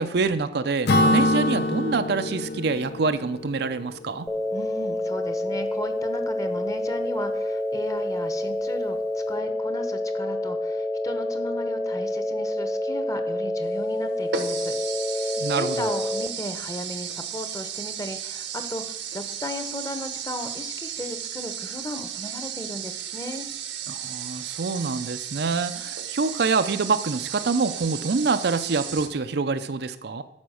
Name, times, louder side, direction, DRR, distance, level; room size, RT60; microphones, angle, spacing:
voice 1, 0.0-4.3 15.4-15.9 23.9-30.2, right 4 dB, 60° right, 10 dB, 0.5 m, -26 dB
Acoustic guitar / Strum, 0.9-4.5, left 1 dB, 60° left, 0.7 m, -25 dB
sound 1, 4.3-16.3, left 1 dB, ahead, 0.5 m, -28 dB
voice 2, 4.5-14.7 15.0-23.5, left 1 dB, 20° left, 8 dB, 1.0 m, -36 dB
sound 2, 13.6-13.7 14.3-29.1, right 8 dB, 75° right, 1.0 m, -34 dB
11.5 x 5.1 x 6.3 m, 0.88 s
head